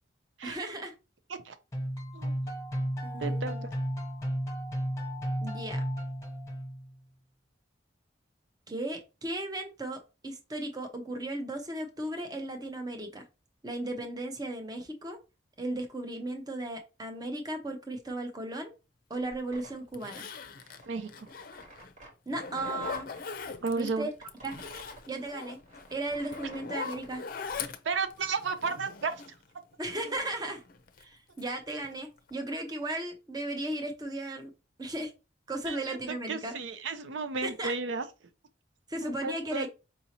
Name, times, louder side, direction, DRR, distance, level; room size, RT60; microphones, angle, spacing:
voice 1, 0.4-0.9 3.0-3.6 5.4-5.8 8.7-13.3 13.6-15.2 15.6-18.7 19.1-20.3 22.3-23.1 23.7-24.1 24.4-24.6 25.1-25.6 25.9-27.2 29.8-30.6 31.0-34.5 34.8-35.1 35.5-36.5 37.4-37.7 38.9-39.7, right 1 dB, 20° right, 0.7 m, -36 dB
sound 1, 1.7-6.9, equal, 15° left, 0.9 m, -33 dB
voice 2, 3.2-3.7 20.9-21.3 23.6-24.1 27.8-29.2 35.7-36.0 36.3-38.0 39.2-39.7, right 4 dB, 80° right, 0.5 m, -33 dB
Zipper (clothing), 19.3-19.4 19.9-21.9 22.3-23.9 24.3-29.4 29.8-31.0 31.4-31.9 32.2-32.3, left 5 dB, 50° left, 0.5 m, -41 dB
sound 2, 19.5-23.2 23.7-27.2, right 2 dB, 40° right, 1.3 m, -52 dB
5.0 x 2.7 x 2.9 m
head